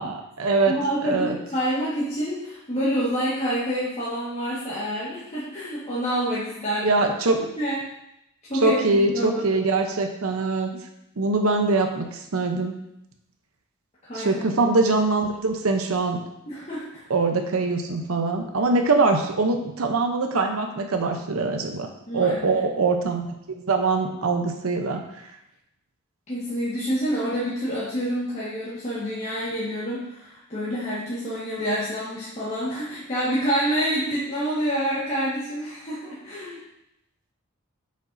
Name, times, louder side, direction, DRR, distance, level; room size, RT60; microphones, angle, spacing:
voice 1, 0.0-1.4 6.8-7.4 8.6-10.7 11.2-12.8 14.1-16.2 17.1-21.9 22.1-23.3 23.5-25.0, right 3 dB, 90° right, 4 dB, 0.7 m, -23 dB
voice 2, 0.7-7.0 7.6-7.9 8.5-9.6 14.0-14.4 16.5-17.0 22.1-22.6 26.3-36.6, equal, 30° left, -10 dB, 1.6 m, -27 dB
8.0 x 5.2 x 2.6 m, 0.84 s
head